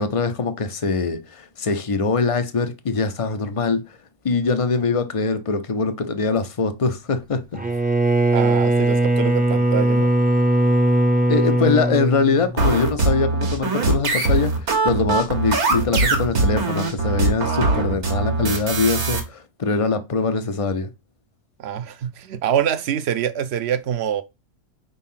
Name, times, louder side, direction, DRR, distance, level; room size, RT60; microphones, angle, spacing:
voice 1, 0.0-4.0 4.2-7.6 11.3-20.9, left 4 dB, 60° left, 0.3 m, -23 dB
Bowed string instrument, 7.5-12.9, right 2 dB, 10° right, 0.4 m, -19 dB
voice 2, 8.3-10.1 21.6-24.2, right 9 dB, 60° right, 0.7 m, -25 dB
sound 1, 12.6-19.2, right 3 dB, 90° right, 1.9 m, -21 dB
4.6 x 4.0 x 5.6 m
omnidirectional pair, 1.5 m